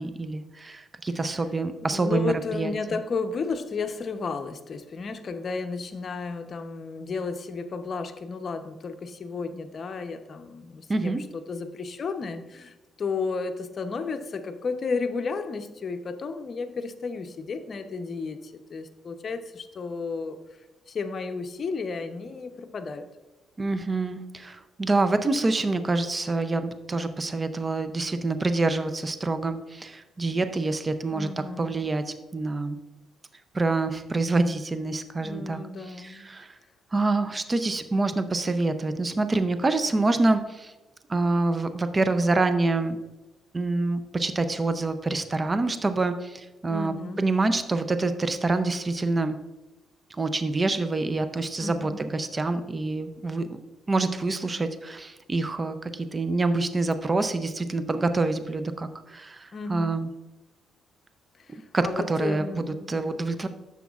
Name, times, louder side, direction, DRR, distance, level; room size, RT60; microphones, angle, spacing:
voice 1, 0.0-2.7 10.9-11.2 23.6-32.8 33.5-36.6 36.9-40.7 41.1-43.0 43.5-49.4 50.1-53.6 53.9-60.1 61.7-63.5, right 3 dB, 25° right, 10 dB, 0.5 m, -26 dB
voice 2, 1.8-20.4 20.9-23.1 31.1-31.9 35.2-36.3 46.7-47.3 51.6-52.0 59.5-60.0 61.4-63.2, left 4 dB, 45° left, 7 dB, 0.7 m, -33 dB
10.0 x 7.0 x 2.4 m, 1.1 s
cardioid pair, 90°, 0 cm